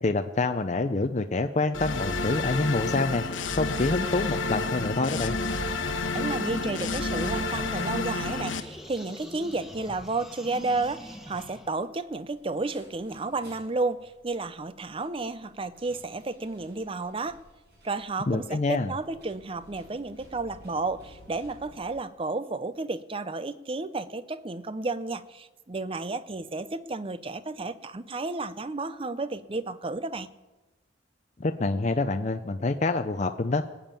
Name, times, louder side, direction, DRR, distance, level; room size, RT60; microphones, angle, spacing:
voice 1, 0.0-3.2 3.6-5.4 18.3-18.9 31.4-33.6, left 3 dB, 35° left, 7 dB, 0.5 m, -27 dB
sound 1, 1.7-8.6, left 3 dB, 75° left, 1.2 m, -30 dB
voice 2, 6.1-17.4 17.8-30.3, right 3 dB, 25° right, 14 dB, 0.5 m, -32 dB
sound 2, 6.2-7.9 8.2-11.7, left 1 dB, ahead, 1.4 m, -43 dB
sound 3, 10.2-21.8, equal, 55° right, 6.2 m, -57 dB
19.5 x 7.1 x 9.0 m, 1.1 s
head